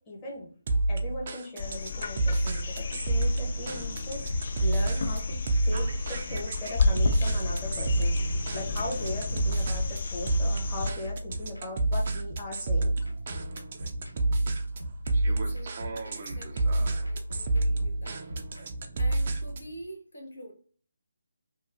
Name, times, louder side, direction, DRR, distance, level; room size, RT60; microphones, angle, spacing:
voice 1, 0.1-0.5 0.9-5.3 5.6-8.1 8.5-12.9, left 1 dB, 20° left, 0.9 m, -38 dB
sound 1, 0.7-19.7, right 2 dB, 40° right, 0.4 m, -29 dB
sound 2, 1.6-10.9 13.0-13.1, left 4 dB, 45° left, 0.3 m, -32 dB
sound 3, 4.2-18.6, equal, 85° right, 0.8 m, -39 dB
voice 2, 15.2-18.2 18.5-18.7 19.0-20.5, equal, 65° left, 0.9 m, -46 dB
2.8 x 2.3 x 2.5 m
figure-of-eight pair, 150°, 0 cm